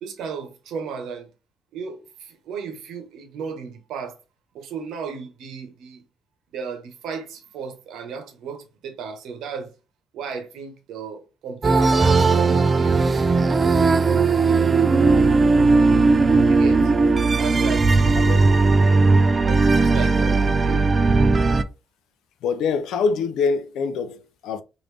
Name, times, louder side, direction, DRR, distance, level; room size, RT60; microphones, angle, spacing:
voice 1, 0.0-1.3 1.7-4.2 4.5-6.0 6.5-9.7 10.1-13.0 16.5-16.9 17.4-18.7 19.3-20.8, right 6 dB, 85° right, 0.9 m, -35 dB
sound 1, 11.6-21.6, right 3 dB, 35° right, 0.4 m, -17 dB
voice 2, 22.4-24.6, left 5 dB, 85° left, 0.4 m, -24 dB
3.2 x 2.6 x 3.3 m
cardioid pair, 90°, 0 cm